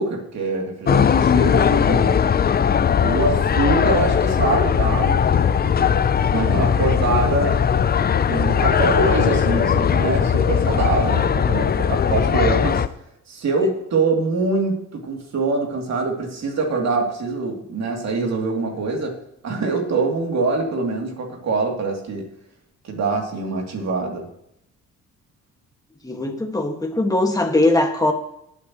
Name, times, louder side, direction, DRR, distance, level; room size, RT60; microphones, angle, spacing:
voice 1, 0.0-2.2 3.0-5.9 6.3-7.6 8.2-12.8 13.3-19.2 19.4-22.3 22.8-24.2, right 3 dB, 60° right, 0 dB, 3.1 m, -24 dB
sound 1, 0.9-12.9, left 7 dB, 30° left, 0.5 m, -19 dB
voice 2, 26.0-28.1, left 2 dB, 10° left, 3 dB, 1.9 m, -20 dB
19.5 x 8.5 x 3.2 m, 0.78 s
cardioid pair, 90°, 30 cm